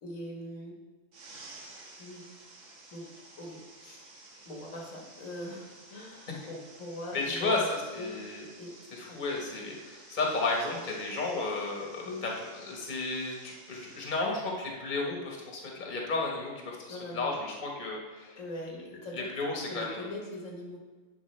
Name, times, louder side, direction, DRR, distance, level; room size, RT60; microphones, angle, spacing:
voice 1, 0.0-0.8 1.9-2.3 2.9-3.1 3.4-4.0 4.4-8.2 8.6-8.8 12.0-12.2 16.9-17.4 18.4-20.8, left 1 dB, 80° left, 0 dB, 1.7 m, -41 dB
sound 1, 1.1-14.1, right 2 dB, 70° right, 1.4 m, -53 dB
voice 2, 7.1-8.4 8.9-18.4 19.1-20.0, left 3 dB, 40° left, -1 dB, 1.3 m, -33 dB
10.0 x 4.9 x 3.2 m, 1.4 s
omnidirectional pair, 1.3 m